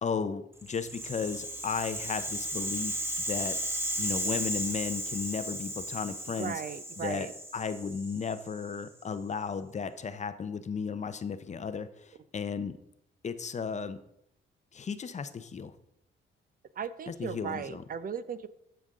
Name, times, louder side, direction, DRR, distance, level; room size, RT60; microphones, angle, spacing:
voice 1, 0.0-3.0 3.3-3.6 4.0-6.6 7.0-7.3 7.5-12.8 13.2-14.0 14.7-15.7 17.1-17.8, left 6 dB, 35° left, 11 dB, 0.7 m, -34 dB
Rattle (instrument), 0.6-8.8, right 1 dB, 10° right, 1.4 m, -35 dB
voice 2, 6.4-7.3 16.8-18.5, right 7 dB, 45° right, 14 dB, 0.6 m, -37 dB
13.5 x 5.3 x 3.7 m, 0.77 s
cardioid pair, 90°, 20 cm